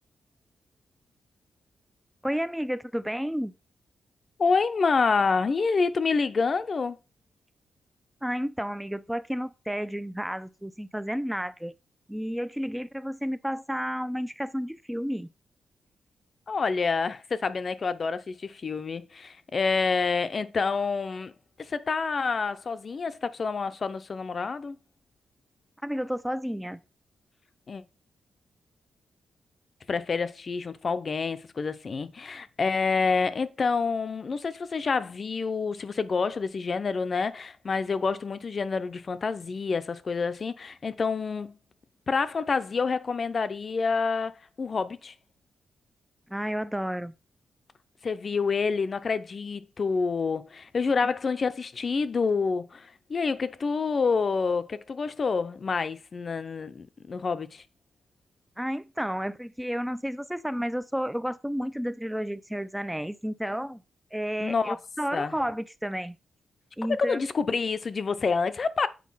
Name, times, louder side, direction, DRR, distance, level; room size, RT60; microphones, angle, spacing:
voice 1, 2.2-3.5 8.2-11.7 12.1-15.3 25.8-26.8 46.3-47.1 58.6-63.8 64.1-66.2 66.8-67.2, equal, 5° right, 0.5 m, -31 dB
voice 2, 4.4-7.0 16.5-21.3 21.6-24.8 27.7-27.8 29.9-41.6 42.1-45.1 48.0-57.6 64.4-64.8 65.1-65.3 66.9-68.9, left 4 dB, 40° left, 0.7 m, -28 dB
8.5 x 4.9 x 5.6 m
wide cardioid pair, 140°, 0 cm